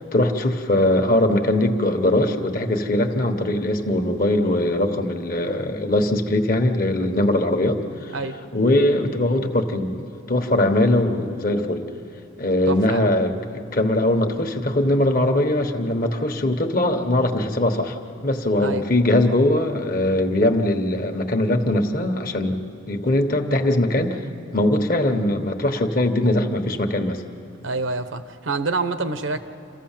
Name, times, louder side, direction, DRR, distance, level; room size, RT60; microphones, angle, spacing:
voice 1, 0.1-8.1 8.5-11.8 12.4-13.3 13.7-18.0 18.2-22.6 22.9-24.2 24.5-27.2, left 1 dB, 45° left, 6 dB, 1.3 m, -21 dB
voice 2, 12.7-13.1 18.6-18.8 27.6-29.4, right 3 dB, 80° right, 10 dB, 1.1 m, -27 dB
28.0 x 15.0 x 7.4 m, 2.7 s
head